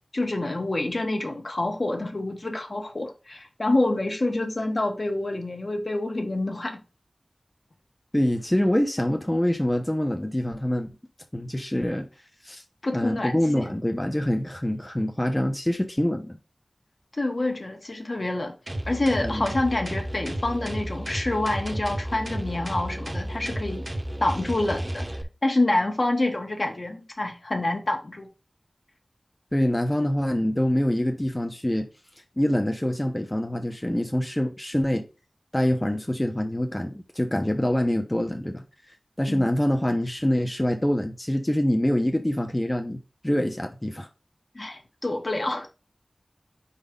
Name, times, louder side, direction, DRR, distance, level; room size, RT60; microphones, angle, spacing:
voice 1, 0.1-6.8 12.8-13.7 17.1-18.5 18.9-23.8 24.2-25.1 25.4-28.3 39.3-39.5 44.5-45.7, left 2 dB, 60° left, 1.3 m, -27 dB
voice 2, 8.1-10.9 11.3-12.1 12.4-12.6 12.9-16.4 19.2-19.5 29.5-31.9 32.4-35.1 35.5-38.6 39.2-44.1, left 1 dB, 20° left, 0.8 m, -25 dB
sound 1, 18.7-25.2, right 1 dB, 40° right, 1.2 m, -32 dB
4.7 x 4.1 x 5.2 m
wide cardioid pair, 45°, 0 cm